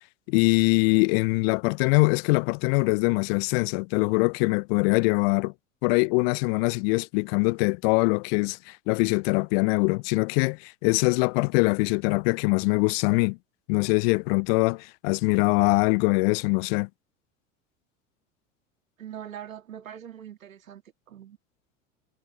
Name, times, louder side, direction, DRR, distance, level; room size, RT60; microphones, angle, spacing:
voice 1, 0.3-5.5 5.8-13.4 13.7-16.9, left 32 dB, 50° left, 0.5 m, -23 dB
voice 2, 19.0-20.8 21.1-21.4, right 10 dB, 80° right, 2.3 m, -42 dB
figure-of-eight pair, 80°, 40 cm